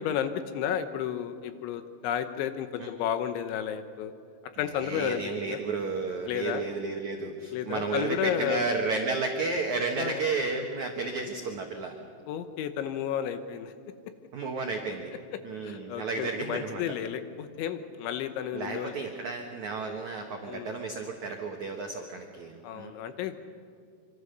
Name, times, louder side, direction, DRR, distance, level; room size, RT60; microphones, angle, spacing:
voice 1, 0.0-4.1 4.6-5.6 6.3-6.6 7.5-8.6 10.0-10.2 12.3-13.7 15.3-18.9 20.5-20.8 22.6-23.4, left 9 dB, 75° left, 9 dB, 3.1 m, -32 dB
voice 2, 4.8-11.9 14.3-15.1 15.4-16.8 18.5-22.9, right 3 dB, 85° right, 2 dB, 1.6 m, -32 dB
25.5 x 25.5 x 6.7 m, 2.3 s
omnidirectional pair, 5.8 m